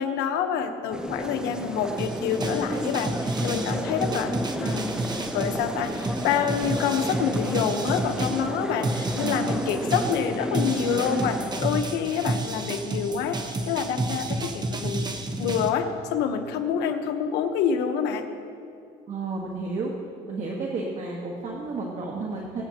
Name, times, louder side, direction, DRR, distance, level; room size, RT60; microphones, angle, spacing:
voice 1, 0.0-4.3 4.6-15.1 15.4-18.2, left 7 dB, 90° left, 6 dB, 1.1 m, -27 dB
sound 1, 0.9-11.6, equal, 5° right, 0.7 m, -32 dB
sound 2, 2.0-8.5 8.8-15.7, right 2 dB, 25° right, 0.9 m, -31 dB
voice 2, 19.1-19.9 20.3-22.6, right 3 dB, 45° right, -2 dB, 1.5 m, -31 dB
22.0 x 9.0 x 2.9 m, 2.4 s
cardioid pair, 110°, 17 cm